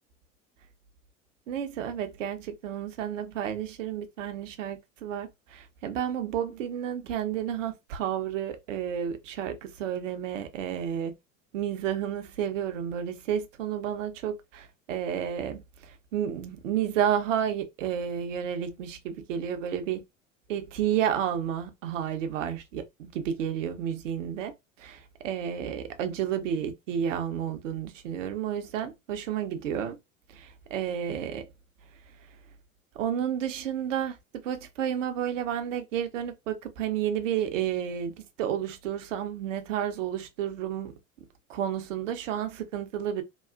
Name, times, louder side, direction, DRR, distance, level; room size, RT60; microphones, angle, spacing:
voice 1, 1.5-11.1 11.5-20.0 20.5-24.5 24.8-30.0 30.3-31.5 32.9-41.0 41.5-43.2, right 9 dB, 70° right, 0.7 m, -31 dB
3.0 x 2.3 x 2.4 m
figure-of-eight pair, 75°, 39 cm